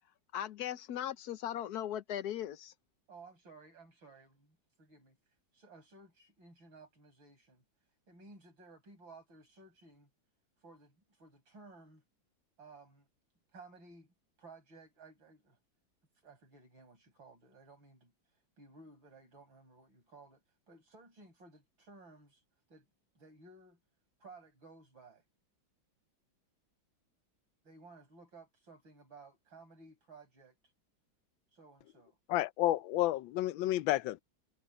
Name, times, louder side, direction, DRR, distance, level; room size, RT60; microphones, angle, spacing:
voice 1, 0.3-2.7, left 11 dB, 60° left, 1.3 m, -38 dB
voice 2, 3.1-5.2 5.5-7.6 8.1-10.1 10.6-12.0 12.6-13.1 13.5-15.6 16.2-18.1 18.6-22.4 22.7-22.9 23.1-23.8 24.2-25.2 27.6-30.6 31.5-32.2, right 3 dB, 90° right, 8.0 m, -57 dB
voice 3, 32.3-34.2, left 14 dB, 85° left, 1.4 m, -31 dB
omnidirectional pair, 2.1 m